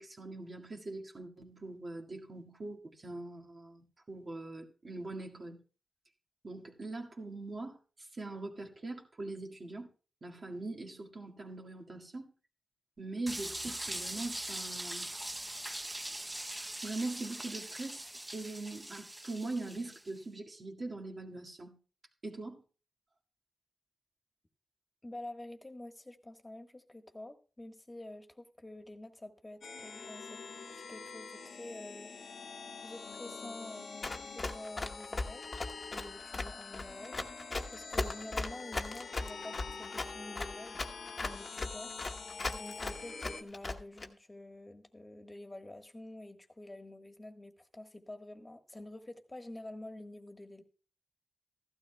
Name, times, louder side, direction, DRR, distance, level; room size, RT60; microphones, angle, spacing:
voice 1, 0.0-5.6 6.4-9.9 10.2-12.3 13.0-15.2 16.0-16.3 16.8-21.8 22.2-22.6, right 2 dB, 50° right, 1.9 m, -42 dB
sound 1, 13.3-20.1, right 1 dB, 15° right, 0.5 m, -41 dB
voice 2, 25.0-30.4 30.7-32.1 32.8-35.5 35.9-37.5 37.7-40.9 41.2-41.9 42.5-50.6, left 1 dB, 25° left, 1.4 m, -48 dB
sound 2, 29.6-43.4, left 4 dB, 75° left, 1.2 m, -46 dB
Run, 34.0-44.1, left 3 dB, 45° left, 1.0 m, -37 dB
15.0 x 12.0 x 2.3 m
cardioid pair, 55°, 0 cm